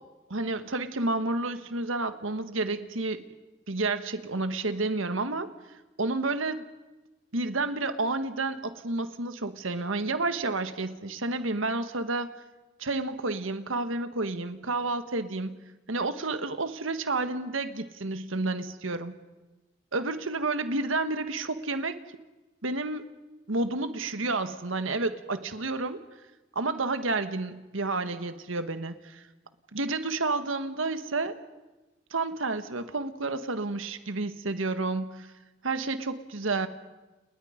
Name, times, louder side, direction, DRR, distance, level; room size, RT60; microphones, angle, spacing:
voice 1, 0.3-3.2 3.7-5.5 6.0-6.6 7.3-12.3 12.8-15.6 15.9-19.2 19.9-22.0 22.6-23.0 23.5-26.0 26.5-29.2 29.7-31.4 32.1-35.3 35.6-36.7, right 3 dB, 85° right, 10 dB, 1.6 m, -30 dB
30.0 x 30.0 x 5.2 m, 1.1 s
head